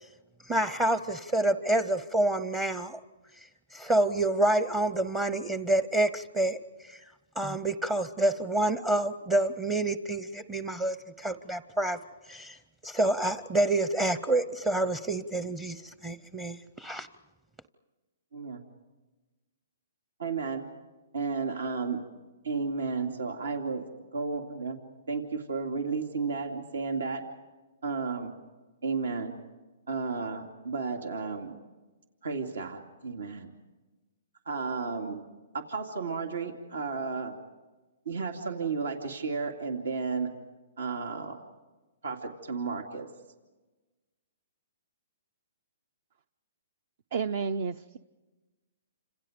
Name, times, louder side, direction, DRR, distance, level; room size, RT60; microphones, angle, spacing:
voice 1, 0.5-3.0 3.7-7.0 7.4-12.0 12.3-12.6 12.8-17.1, right 1 dB, 15° right, 13 dB, 0.7 m, -28 dB
voice 2, 18.3-18.6 20.2-20.6 21.1-22.0 22.4-23.8 24.1-24.8 25.1-27.2 27.8-28.3 28.8-29.3 29.9-31.5 32.2-33.5 34.5-35.2 35.5-37.3 38.1-40.3 40.8-41.4 42.0-43.1, right 4 dB, 85° right, 4 dB, 2.7 m, -33 dB
voice 3, 47.1-48.0, right 5 dB, 60° right, 14 dB, 0.7 m, -31 dB
30.0 x 27.0 x 5.2 m, 1.2 s
hypercardioid pair, 150°, 0 cm